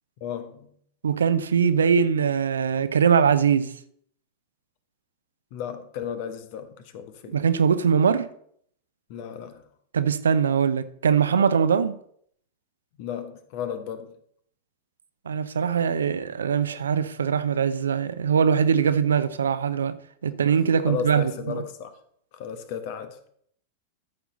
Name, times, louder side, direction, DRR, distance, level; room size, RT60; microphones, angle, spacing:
voice 1, 0.2-0.7 5.5-7.4 9.1-9.6 13.0-14.1 20.9-21.9 22.3-23.2, left 8 dB, 45° left, 1.1 m, -34 dB
voice 2, 1.0-3.7 7.3-8.3 9.9-12.0 15.3-20.0 20.2-21.6, right 7 dB, 70° right, 0.6 m, -22 dB
14.0 x 5.9 x 3.9 m
figure-of-eight pair, 90°, 0 cm